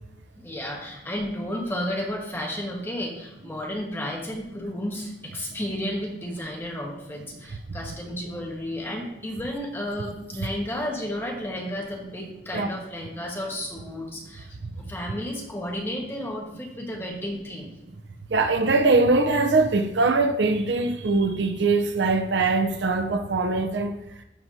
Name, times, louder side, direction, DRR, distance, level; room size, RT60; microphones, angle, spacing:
voice 1, 0.4-17.7, left 1 dB, 15° left, 1.4 m, -32 dB
voice 2, 18.3-24.0, right 3 dB, 85° right, 0.7 m, -22 dB
13.5 x 4.6 x 2.8 m
head